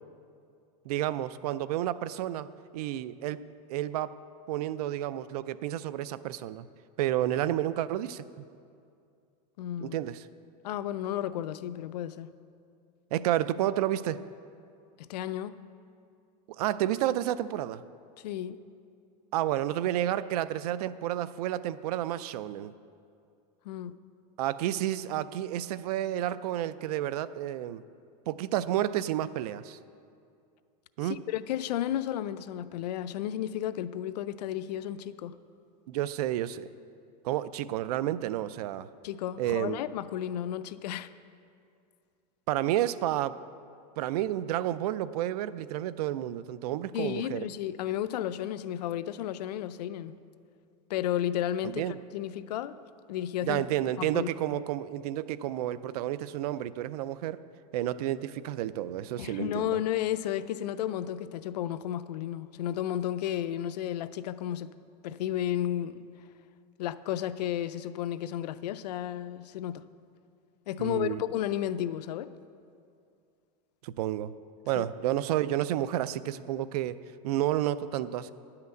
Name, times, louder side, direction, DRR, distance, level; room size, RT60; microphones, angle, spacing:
voice 1, 0.9-2.5 2.7-4.1 4.5-6.6 7.0-8.2 9.8-10.3 13.1-14.2 16.5-17.8 19.3-22.7 24.4-27.8 28.3-29.8 31.0-31.2 35.9-36.7 37.2-38.9 39.4-39.8 42.5-43.4 44.0-47.4 51.6-52.0 53.4-57.4 57.7-59.8 70.8-71.2 73.8-74.3 74.7-77.0 77.2-78.3, right 13 dB, 70° right, 16 dB, 0.4 m, -30 dB
voice 2, 9.6-10.0 10.6-12.3 15.0-15.5 18.2-18.6 23.7-23.9 31.0-35.3 39.0-41.1 46.9-50.1 50.9-52.8 53.1-53.6 54.0-54.3 59.2-64.7 65.0-66.0 66.8-69.8 70.7-72.3 74.8-74.9, left 11 dB, 85° left, 14 dB, 0.5 m, -33 dB
10.5 x 5.8 x 7.8 m, 2.4 s
supercardioid pair, 150°, 20 cm